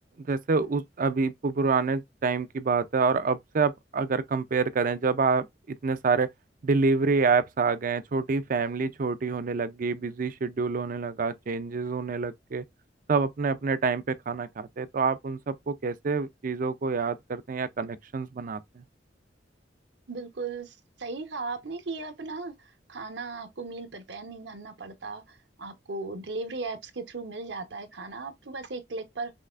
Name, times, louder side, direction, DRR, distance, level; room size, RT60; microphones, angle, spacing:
voice 1, 0.2-6.3 6.6-12.6 13.1-18.8, right 4 dB, 50° right, 0.4 m, -27 dB
voice 2, 20.1-29.3, right 3 dB, 70° right, 0.9 m, -37 dB
5.6 x 3.2 x 2.4 m
head